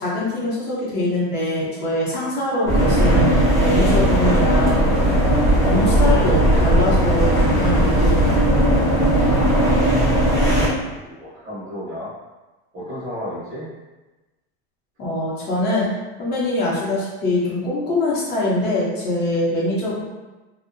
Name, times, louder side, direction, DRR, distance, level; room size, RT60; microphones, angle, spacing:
voice 1, 0.0-4.8 5.2-8.9 15.0-15.9 16.2-20.0, left 1 dB, 30° left, -6 dB, 0.8 m, -23 dB
sound 1, 2.7-10.7, right 1 dB, 10° left, 0.3 m, -17 dB
voice 2, 9.5-12.1 12.7-13.7, left 1 dB, 25° right, -9 dB, 0.7 m, -34 dB
2.6 x 2.1 x 2.5 m, 1.1 s
supercardioid pair, 160°, 32 cm